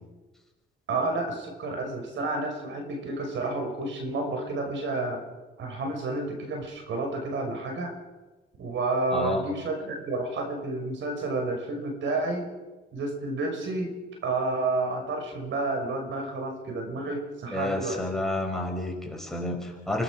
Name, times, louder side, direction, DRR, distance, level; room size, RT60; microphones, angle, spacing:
voice 1, 0.9-5.2 5.6-7.9 8.6-12.5 12.9-13.9 14.2-18.0, right 2 dB, 70° right, 4 dB, 5.7 m, -30 dB
voice 2, 9.1-9.4 17.5-20.0, left 1 dB, ahead, 1 dB, 5.7 m, -30 dB
25.5 x 18.0 x 6.4 m, 1.2 s
cardioid pair, 90°, 20 cm